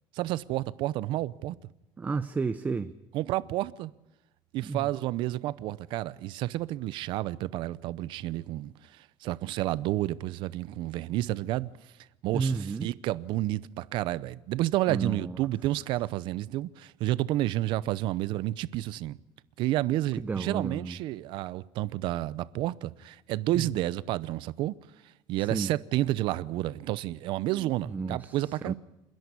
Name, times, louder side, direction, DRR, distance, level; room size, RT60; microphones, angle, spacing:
voice 1, 0.1-1.6 3.1-3.9 4.5-11.7 12.2-19.2 19.6-24.7 25.3-28.7, right 15 dB, 65° right, 0.7 m, -30 dB
voice 2, 2.0-2.9 4.6-4.9 12.3-12.9 14.9-15.4 20.1-21.0 23.5-23.7 25.4-25.7 27.6-28.7, right 4 dB, 20° right, 0.7 m, -32 dB
28.5 x 11.0 x 9.8 m
cardioid pair, 130°, 9 cm